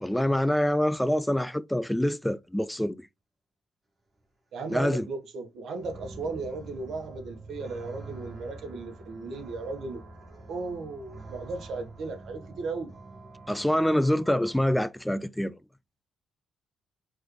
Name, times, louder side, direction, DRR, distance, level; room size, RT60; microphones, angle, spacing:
voice 1, 0.0-3.0 4.7-5.1 13.5-15.6, left 1 dB, 5° left, 0.3 m, -26 dB
voice 2, 4.5-10.0 10.5-12.9, right 3 dB, 70° right, 1.3 m, -36 dB
sound 1, 5.8-14.8, right 2 dB, 25° right, 2.2 m, -46 dB
4.6 x 3.5 x 3.2 m
cardioid pair, 90°, 0 cm